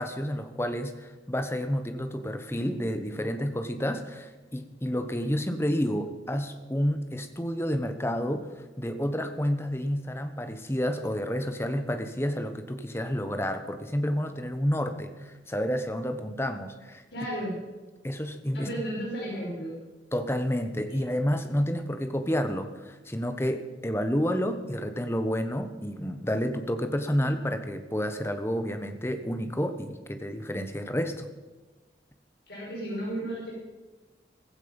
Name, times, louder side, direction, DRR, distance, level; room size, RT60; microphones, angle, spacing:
voice 1, 0.0-8.5 8.8-17.0 18.0-18.7 20.1-31.3, equal, 15° left, 8 dB, 1.1 m, -30 dB
voice 2, 17.1-17.5 18.5-19.7 32.5-33.5, right 1 dB, 70° left, -5 dB, 5.4 m, -33 dB
15.5 x 15.0 x 5.3 m, 1.2 s
head